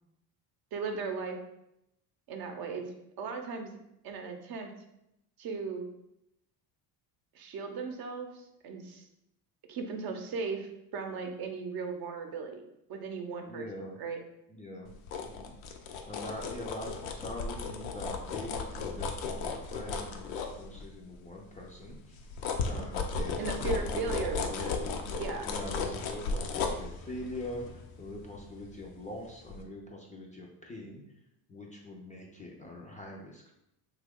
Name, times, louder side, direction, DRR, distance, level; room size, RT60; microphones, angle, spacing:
voice 1, 0.7-1.4 2.3-2.9 3.2-3.7 4.0-4.7 5.4-5.8 7.3-9.1 9.7-12.6 12.9-13.7 14.0-14.2 23.4-24.7 25.2-25.5, right 4 dB, 50° right, 4 dB, 0.6 m, -37 dB
voice 2, 13.5-14.0 14.5-14.9 15.2-15.6 16.1-22.3 22.7-25.0 25.4-31.2 31.5-33.5, left 1 dB, 15° left, -2 dB, 0.4 m, -43 dB
sound 1, 14.9-21.1 21.6-29.1 29.5-29.6, left 4 dB, 80° left, 0.6 m, -35 dB
2.9 x 2.3 x 3.5 m, 0.82 s
supercardioid pair, 80°, 47 cm